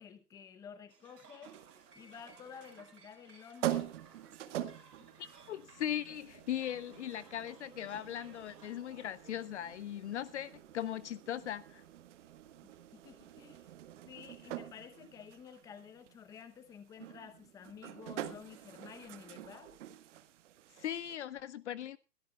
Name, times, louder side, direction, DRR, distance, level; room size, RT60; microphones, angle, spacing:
voice 1, 0.0-1.7 1.9-3.9 12.6-13.7 14.1-19.7, left 7 dB, 5° left, 0.8 m, -52 dB
sound 1, 0.9-9.4, right 5 dB, 90° right, 4.7 m, -60 dB
sound 2, 1.4-21.2, right 12 dB, 50° right, 1.5 m, -45 dB
voice 2, 5.2-11.8 20.8-22.0, left 11 dB, 50° left, 0.6 m, -39 dB
21.5 x 13.5 x 2.3 m
hypercardioid pair, 145°, 47 cm